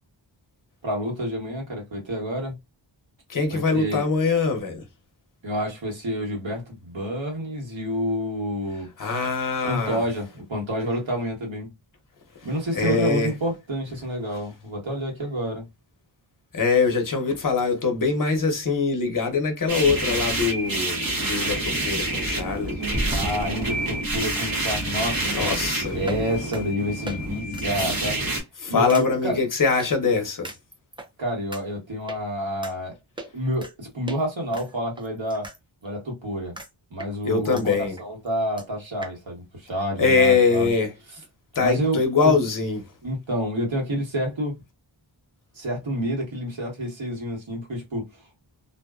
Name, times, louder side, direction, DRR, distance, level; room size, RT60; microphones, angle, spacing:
voice 1, 0.8-2.6 3.5-4.0 5.4-8.9 9.6-11.7 12.4-15.7 23.1-25.6 25.9-28.2 28.7-29.4 31.2-32.9 33.3-35.5 35.8-36.5 36.9-40.7 41.6-42.3 43.0-44.5 45.5-48.1, equal, 70° right, 1.3 m, -29 dB
voice 2, 3.3-4.8 9.0-10.0 12.7-13.3 16.5-22.9 25.0-26.0 28.6-30.5 37.2-38.0 40.0-40.9 41.5-42.8, left 4 dB, 40° left, 0.8 m, -23 dB
sound 1, 19.7-28.4, right 1 dB, 45° right, 1.1 m, -28 dB
sound 2, 22.9-24.2 25.5-25.7 26.1-26.3 26.5-26.6 27.1-27.2 27.5-27.7 28.1-28.3 28.9-29.1 29.8-29.9 30.4-31.1 31.5-31.6 32.1-32.2 32.6-32.7 33.2-33.7 34.1-34.2 34.5-35.6 35.9-36.0 36.6-36.7 37.0-37.6 38.0-38.1 38.3-38.4 38.6-38.7 39.0-39.1, right 1 dB, 10° right, 0.5 m, -34 dB
2.6 x 2.2 x 2.3 m
wide cardioid pair, 85°, 48 cm